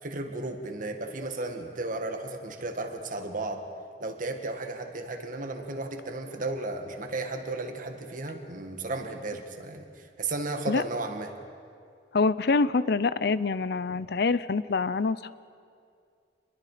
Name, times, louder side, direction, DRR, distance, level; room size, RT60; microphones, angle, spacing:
voice 1, 0.0-3.7 4.0-11.3, right 2 dB, 50° right, 5 dB, 1.9 m, -34 dB
voice 2, 12.1-15.3, left 4 dB, 65° left, 16 dB, 0.6 m, -25 dB
28.5 x 22.0 x 5.1 m, 2.3 s
head